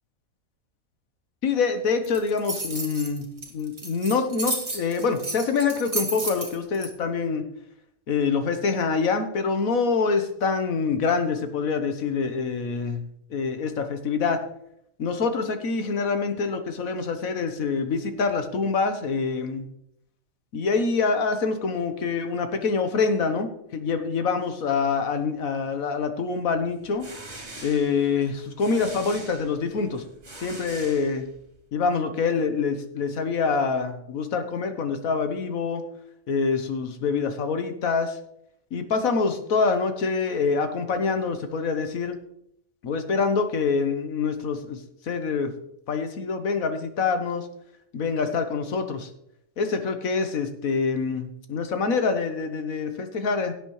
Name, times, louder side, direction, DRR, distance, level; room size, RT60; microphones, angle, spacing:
voice 1, 1.4-3.3 3.5-7.4 8.1-14.4 15.0-19.7 20.5-27.1 27.6-30.0 30.4-31.2 31.7-35.8 36.3-38.2 38.7-42.2 42.8-44.8 45.0-45.5 45.9-47.5 47.9-49.1 49.6-53.5, left 5 dB, 85° left, 8 dB, 1.6 m, -25 dB
sound 1, 2.0-6.9, right 2 dB, 25° right, 1.8 m, -32 dB
sound 2, 26.7-31.6, right 2 dB, 50° right, 2.9 m, -43 dB
17.0 x 8.1 x 3.2 m, 0.76 s
omnidirectional pair, 1.4 m